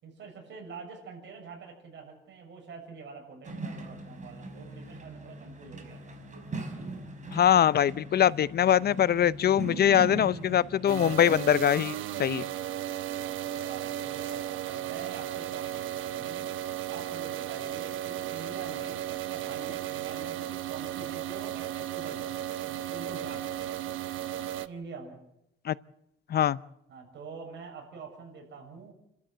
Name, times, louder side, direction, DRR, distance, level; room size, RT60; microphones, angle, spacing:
voice 1, 0.0-6.2 13.2-16.5 16.9-22.4 22.7-23.8 24.6-25.2 26.9-28.9, right 4 dB, 65° right, 7.2 m, -45 dB
Excavator work, 3.4-11.1, right 2 dB, 40° right, 5.3 m, -40 dB
voice 2, 7.3-12.4 25.7-25.8 26.3-26.6, left 10 dB, 55° left, 0.7 m, -23 dB
sound 1, 10.9-24.7, right 12 dB, 85° right, 1.0 m, -35 dB
30.0 x 13.0 x 7.6 m
cardioid pair, 90°, 20 cm